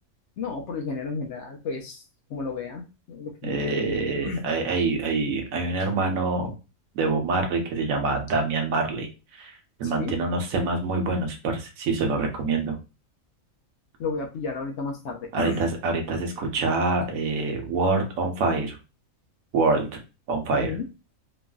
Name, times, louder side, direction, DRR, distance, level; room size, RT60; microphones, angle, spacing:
voice 1, 0.4-2.0 2.3-4.4 9.8-10.2 14.0-15.7 20.5-20.8, left 4 dB, 65° left, 3 dB, 0.8 m, -33 dB
voice 2, 3.4-6.6 6.9-12.8 15.3-18.8 19.5-20.0 20.3-20.8, right 3 dB, 80° right, 4 dB, 1.1 m, -26 dB
3.0 x 2.5 x 2.2 m, 0.30 s
omnidirectional pair, 1.4 m